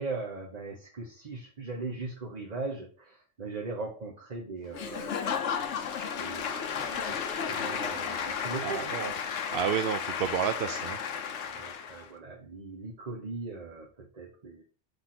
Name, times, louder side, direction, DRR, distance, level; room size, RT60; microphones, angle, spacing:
voice 1, 0.0-5.4 6.2-8.8 11.4-14.6, right 3 dB, 35° right, 1 dB, 1.0 m, -39 dB
Applause / Crowd, 4.7-12.1, left 7 dB, 70° left, 1.1 m, -33 dB
voice 2, 8.6-9.1 9.5-11.0, right 8 dB, 60° right, 8 dB, 0.6 m, -30 dB
5.9 x 3.4 x 5.9 m, 0.40 s
omnidirectional pair, 1.3 m